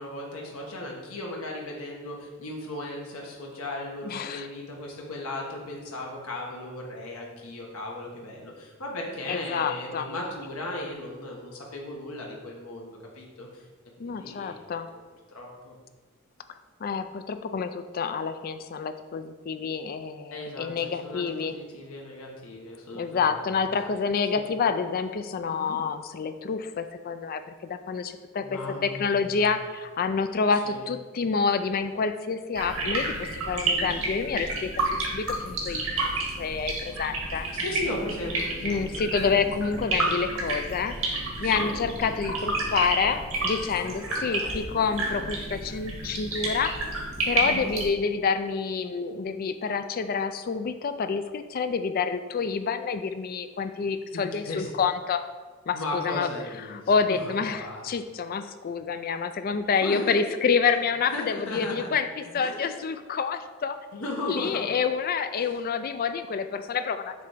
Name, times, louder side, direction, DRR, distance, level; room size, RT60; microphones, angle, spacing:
voice 1, 0.0-13.6 14.1-14.8 15.3-15.7 20.3-23.5 24.3-24.5 25.5-25.8 28.4-29.5 30.5-30.9 33.6-33.9 37.5-39.0 41.4-41.7 43.6-44.7 47.4-47.7 54.1-54.7 55.7-56.8 57.1-57.8 59.8-60.2 61.1-61.9 62.3-62.6 63.9-64.7 65.4-65.6, left 1 dB, 80° left, -1 dB, 1.3 m, -37 dB
voice 2, 4.0-4.5 9.3-10.1 14.0-14.9 16.8-21.6 22.9-34.7 35.1-36.1 36.4-37.5 38.6-41.0 41.4-46.9 47.2-55.2 55.7-56.3 56.7-63.8 64.3-67.1, left 5 dB, 45° left, 10 dB, 0.4 m, -28 dB
sound 1, 32.5-47.9, right 2 dB, 85° right, 1.8 m, -30 dB
6.7 x 3.4 x 5.0 m, 1.4 s
head